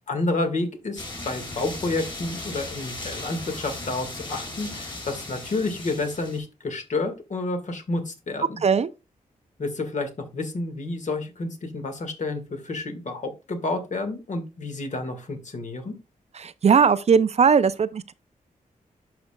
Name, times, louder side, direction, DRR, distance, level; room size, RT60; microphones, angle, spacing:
voice 1, 0.1-8.6 9.6-16.0, left 2 dB, 55° left, 1.8 m, -30 dB
sound 1, 1.0-6.4, left 2 dB, 35° left, 4.4 m, -37 dB
voice 2, 16.4-18.1, right 6 dB, 45° right, 0.4 m, -19 dB
11.5 x 5.0 x 2.3 m
cardioid pair, 85°, 15 cm